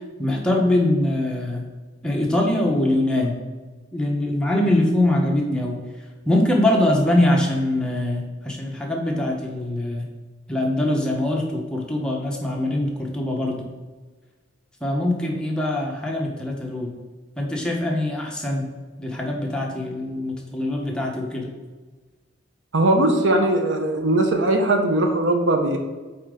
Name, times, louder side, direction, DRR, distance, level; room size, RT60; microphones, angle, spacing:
voice 1, 0.2-1.6 2.0-3.4 3.9-5.8 6.3-10.0 10.5-13.7 14.8-16.9 17.4-18.7 19.0-21.5, left 1 dB, 5° left, -1 dB, 1.0 m, -23 dB
voice 2, 22.7-25.8, right 1 dB, 75° right, 4 dB, 0.9 m, -19 dB
8.5 x 4.1 x 3.8 m, 1.3 s
head